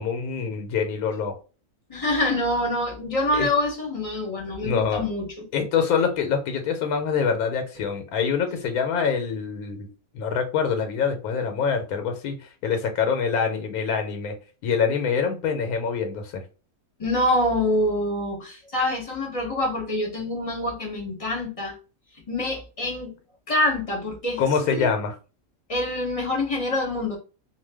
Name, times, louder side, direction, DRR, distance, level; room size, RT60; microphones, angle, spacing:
voice 1, 0.0-1.4 3.3-3.5 4.6-5.0 5.5-9.9 10.1-12.4 12.6-14.4 14.6-16.4 24.4-25.1, left 6 dB, 85° left, 1.1 m, -25 dB
voice 2, 1.9-5.4 17.0-21.7 22.3-23.1 23.5-24.9 25.7-27.2, left 1 dB, 35° left, 0.6 m, -26 dB
2.4 x 2.2 x 3.3 m
omnidirectional pair, 1.5 m